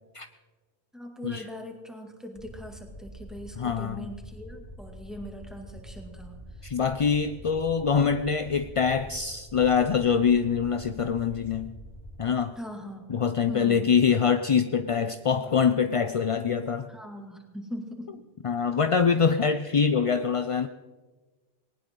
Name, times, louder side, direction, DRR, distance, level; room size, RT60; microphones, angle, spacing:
voice 1, 0.9-6.4 12.6-13.1 13.5-13.9 16.9-18.2 18.7-18.8, equal, ahead, 2 dB, 2.3 m, -41 dB
sound 1, 2.3-12.2, equal, 30° left, 3.0 m, -45 dB
voice 2, 3.6-4.1 6.6-11.7 12.2-12.6 13.1-16.9 18.4-20.7, left 6 dB, 45° left, 10 dB, 0.4 m, -24 dB
19.5 x 19.0 x 3.8 m, 1.3 s
omnidirectional pair, 1.2 m